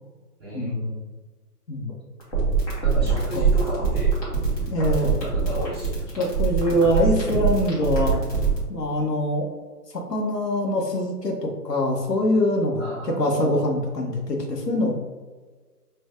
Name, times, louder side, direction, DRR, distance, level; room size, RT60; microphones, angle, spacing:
voice 1, 0.4-1.0 1.9-2.0 2.8-4.2 4.8-6.3 6.8-7.1 12.8-13.6, equal, 15° right, -10 dB, 0.6 m, -34 dB
sound 1, 2.2-8.6, right 6 dB, 25° left, 1.0 m, -22 dB
voice 2, 3.0-3.4 4.7-5.1 6.2-8.2 8.7-9.5 9.9-14.9, left 1 dB, 80° left, 0 dB, 1.1 m, -24 dB
5.6 x 2.6 x 2.4 m, 1.4 s
figure-of-eight pair, 140°, 47 cm